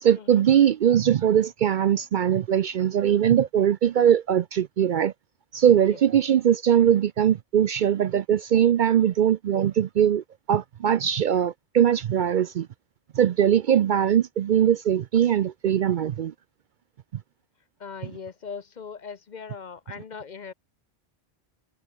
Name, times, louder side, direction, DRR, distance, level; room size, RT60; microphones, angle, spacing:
voice 1, 0.0-5.1 5.5-12.7 13.1-16.3, right 9 dB, 60° right, 0.6 m, -21 dB
voice 2, 17.8-20.5, left 6 dB, 50° left, 0.8 m, -39 dB
omnidirectional pair, 1.1 m